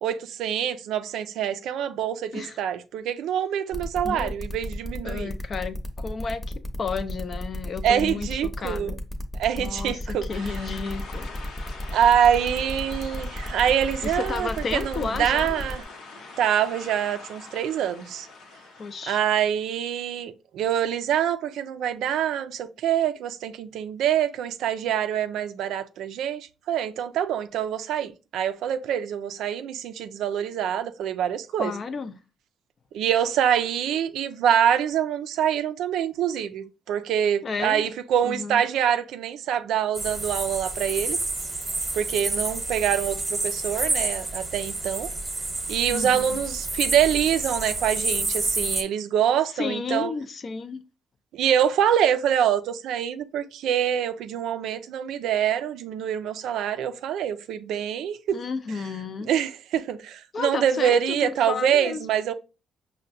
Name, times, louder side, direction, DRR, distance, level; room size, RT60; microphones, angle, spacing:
voice 1, 0.0-5.3 7.8-8.9 9.4-10.3 11.9-15.8 16.4-18.3 19.1-31.7 32.9-41.2 41.9-45.1 45.7-50.1 51.3-58.4 59.3-62.3, right 9 dB, 80° right, 0.3 m, -25 dB
sound 1, 3.7-15.8, left 1 dB, 20° left, 0.8 m, -35 dB
voice 2, 4.0-4.4 5.0-9.0 9.6-11.3 14.0-15.6 18.8-19.2 31.6-32.2 37.4-37.9 38.2-38.6 45.9-46.4 49.5-50.8 58.3-59.3 60.3-62.0, left 4 dB, 45° left, 0.5 m, -32 dB
sound 2, 10.3-19.2, left 3 dB, 80° left, 0.9 m, -42 dB
sound 3, 39.9-48.8, right 2 dB, 20° right, 0.9 m, -29 dB
5.3 x 2.1 x 2.5 m
cardioid pair, 90°, 0 cm